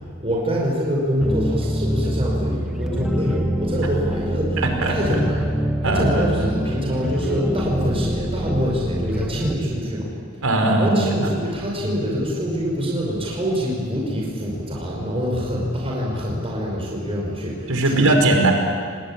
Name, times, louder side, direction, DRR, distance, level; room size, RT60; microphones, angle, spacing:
voice 1, 0.2-5.5 5.9-10.1 10.8-18.1, equal, 25° right, -2 dB, 5.2 m, -25 dB
sound 1, 1.2-9.5, equal, ahead, 1.5 m, -25 dB
voice 2, 5.8-6.5 10.4-11.3 17.7-18.5, right 2 dB, 80° right, 3 dB, 5.3 m, -19 dB
29.5 x 20.5 x 8.8 m, 2.1 s
head